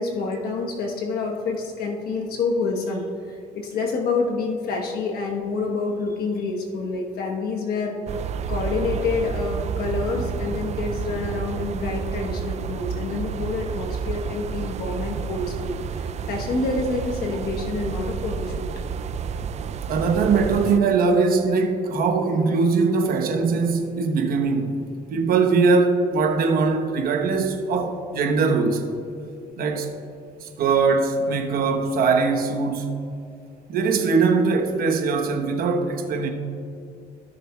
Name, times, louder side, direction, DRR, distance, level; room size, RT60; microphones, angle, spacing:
voice 1, 0.0-8.0 8.5-18.7, left 3 dB, 65° left, 1.1 m, -27 dB
sound 1, 8.1-20.8, right 6 dB, 40° right, 0.4 m, -30 dB
voice 2, 19.9-24.8 25.1-28.9 29.6-29.9 30.4-32.9 33.7-36.3, right 4 dB, 60° right, 1.1 m, -21 dB
16.5 x 6.7 x 2.3 m
cardioid pair, 110°, 17 cm